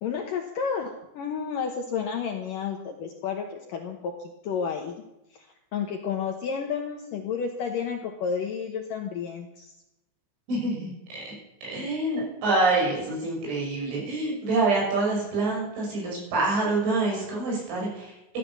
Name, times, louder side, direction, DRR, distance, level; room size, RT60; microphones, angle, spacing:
voice 1, 0.0-4.1 4.4-5.0 5.3-5.4 5.7-9.7, left 6 dB, 80° left, 3 dB, 2.0 m, -31 dB
voice 2, 10.5-11.3 11.6-18.4, right 3 dB, 75° right, -3 dB, 8.5 m, -26 dB
15.0 x 10.5 x 7.0 m, 0.91 s
omnidirectional pair, 5.6 m